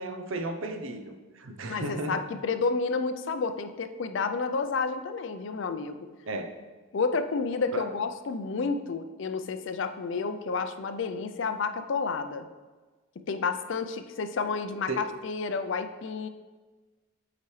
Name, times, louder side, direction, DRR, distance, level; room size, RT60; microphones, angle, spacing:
voice 1, 0.0-2.2 6.3-6.5 7.7-7.9 14.9-15.1, right 2 dB, 65° right, 6 dB, 0.6 m, -34 dB
voice 2, 1.7-6.0 6.9-12.5 13.3-16.3, left 4 dB, 60° left, 9 dB, 0.4 m, -30 dB
8.3 x 5.0 x 3.1 m, 1.3 s
head